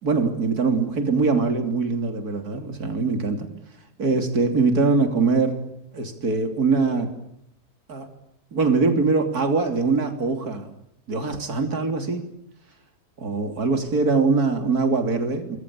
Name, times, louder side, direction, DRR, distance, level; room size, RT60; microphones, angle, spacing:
voice 1, 0.0-3.5 4.0-5.6 5.9-7.1 7.9-8.1 8.5-10.7 11.1-12.3 13.2-15.6, right 4 dB, 70° right, 7 dB, 3.7 m, -22 dB
29.5 x 22.5 x 8.6 m, 0.80 s
omnidirectional pair, 1.7 m